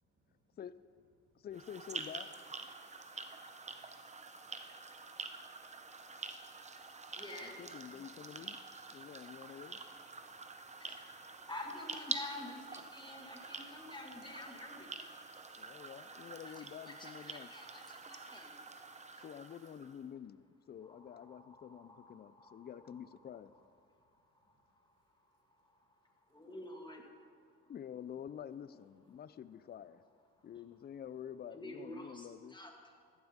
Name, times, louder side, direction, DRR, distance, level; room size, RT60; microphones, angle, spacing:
voice 1, 0.1-0.6 1.2-1.5 2.7-7.2 8.0-11.5 12.9-14.3 14.8-16.0 17.9-19.3 21.3-22.7 23.9-26.6 27.1-27.7 30.3-30.5 32.9-33.2, equal, 40° right, -3 dB, 3.7 m, -80 dB
voice 2, 1.4-2.3 7.4-8.6 8.9-9.8 15.6-17.5 19.2-23.5 27.7-30.0 30.4-32.6, left 9 dB, 35° left, 15 dB, 0.4 m, -48 dB
sound 1, 1.5-20.0, right 4 dB, 25° right, 0.8 m, -47 dB
voice 3, 6.8-7.6 10.8-11.1 11.4-15.0 16.9-18.5 20.9-22.6 26.3-27.0 31.5-32.7, left 1 dB, 15° left, 1 dB, 2.1 m, -49 dB
15.5 x 12.0 x 3.6 m, 2.1 s
cardioid pair, 90°, 30 cm